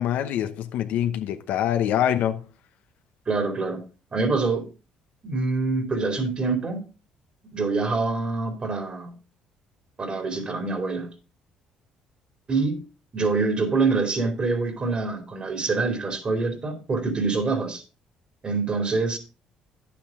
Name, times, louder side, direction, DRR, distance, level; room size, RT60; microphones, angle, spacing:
voice 1, 0.0-2.4, left 10 dB, 75° left, 0.9 m, -24 dB
voice 2, 3.3-3.8 4.1-4.7 5.2-6.8 7.5-9.1 10.0-11.1 12.5-12.8 13.1-17.8 18.4-19.2, right 3 dB, 40° right, 2.7 m, -25 dB
10.0 x 8.5 x 3.7 m
supercardioid pair, 70°, 3 cm